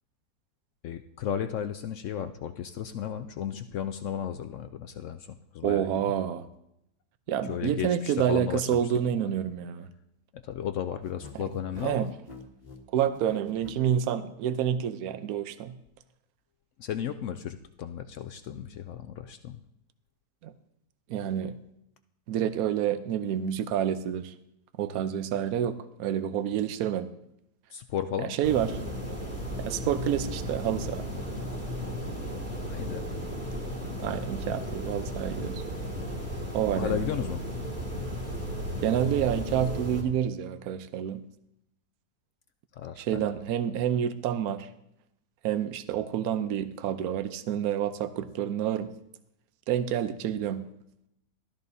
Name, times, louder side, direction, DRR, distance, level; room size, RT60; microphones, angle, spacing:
voice 1, 0.8-6.0 7.4-8.8 10.3-12.1 16.8-19.6 27.7-28.3 32.6-33.0 36.8-37.5 42.7-43.2, left 9 dB, 85° left, 8 dB, 0.6 m, -34 dB
voice 2, 5.6-6.5 7.3-9.9 11.8-12.1 12.9-15.8 20.4-20.5 21.1-21.6 22.3-24.3 24.8-27.1 28.2-28.7 29.6-31.1 34.0-35.6 36.5-37.1 38.8-41.2 43.0-44.7 45.4-48.9 49.7-50.7, right 9 dB, 65° right, 11 dB, 1.1 m, -28 dB
sound 1, 11.0-13.8, left 3 dB, 25° left, 1.3 m, -46 dB
sound 2, 28.4-40.0, equal, 10° right, 2.1 m, -35 dB
15.5 x 13.0 x 2.7 m, 0.79 s
omnidirectional pair, 1.9 m